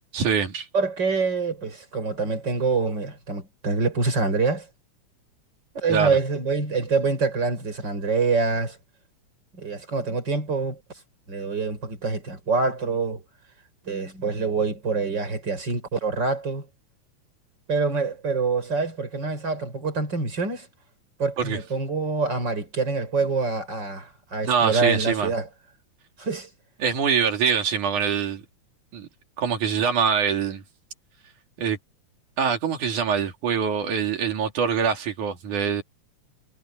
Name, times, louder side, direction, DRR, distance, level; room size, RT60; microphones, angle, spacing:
voice 1, 0.1-0.7 5.9-6.2 21.5-21.6 24.4-25.3 26.8-28.4 28.9-29.1 29.4-30.6 31.6-31.8 32.4-35.8, right 6 dB, 85° right, 4.0 m, -24 dB
voice 2, 0.7-4.7 5.7-8.8 9.5-10.8 11.3-13.2 13.9-16.7 17.7-20.7 21.2-25.5 26.2-26.5, right 4 dB, 35° right, 6.1 m, -25 dB
omnidirectional pair, 3.4 m